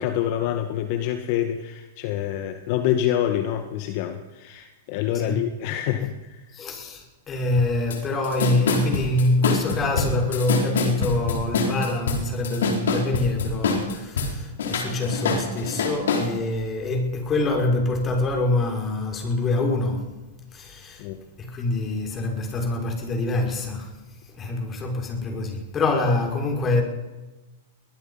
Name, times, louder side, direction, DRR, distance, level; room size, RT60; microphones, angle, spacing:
voice 1, 0.0-6.5 21.0-21.2, left 11 dB, 50° left, 1.8 m, -26 dB
voice 2, 5.1-5.5 6.5-20.2 20.5-21.1 21.4-23.9 24.3-26.8, left 2 dB, 25° left, 5.9 m, -25 dB
sound 1, 7.9-8.0 8.2-14.3 14.6-16.3, left 4 dB, 75° left, 4.9 m, -24 dB
23.0 x 19.5 x 5.8 m
hypercardioid pair, 115°, 0 cm